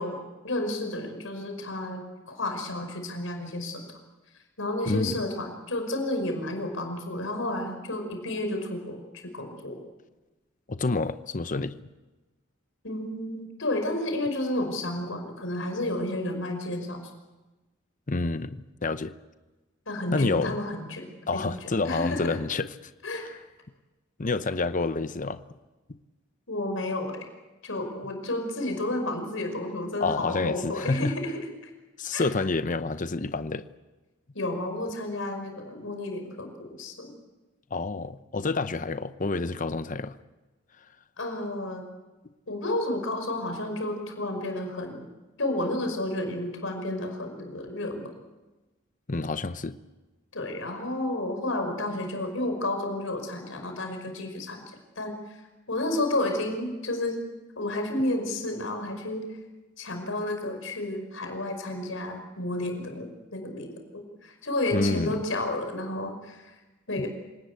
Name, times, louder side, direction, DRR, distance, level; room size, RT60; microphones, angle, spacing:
voice 1, 0.0-3.8 4.6-9.0 9.3-9.8 12.8-17.1 19.9-22.4 23.0-23.3 26.5-27.2 27.6-31.7 32.1-32.3 34.3-37.1 41.2-41.8 42.5-45.1 45.4-48.1 50.3-54.6 55.0-55.4 55.7-57.2 57.6-59.4 59.8-66.6 66.9-67.1, left 1 dB, 75° left, 5.4 m, -31 dB
voice 2, 10.7-11.8 18.1-19.1 20.1-20.6 21.3-22.7 24.2-25.4 30.0-31.2 32.0-33.6 37.7-40.2 49.1-49.8 64.7-65.2 67.0-67.1, left 3 dB, 40° left, 0.8 m, -28 dB
27.0 x 18.5 x 8.5 m
head